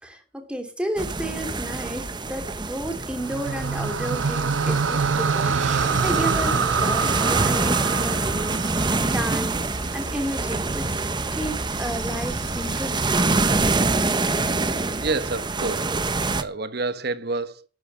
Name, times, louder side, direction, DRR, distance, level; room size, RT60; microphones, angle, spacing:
voice 1, 0.0-9.6 9.9-13.3, right 1 dB, 5° right, 2.9 m, -32 dB
sound 1, 1.0-16.4, right 3 dB, 25° right, 1.0 m, -26 dB
sound 2, 3.1-9.5, right 5 dB, 80° right, 0.6 m, -25 dB
sound 3, 5.4-14.8, right 1 dB, 40° right, 1.7 m, -37 dB
voice 2, 14.9-17.6, right 3 dB, 55° right, 1.0 m, -29 dB
11.0 x 10.5 x 6.3 m
head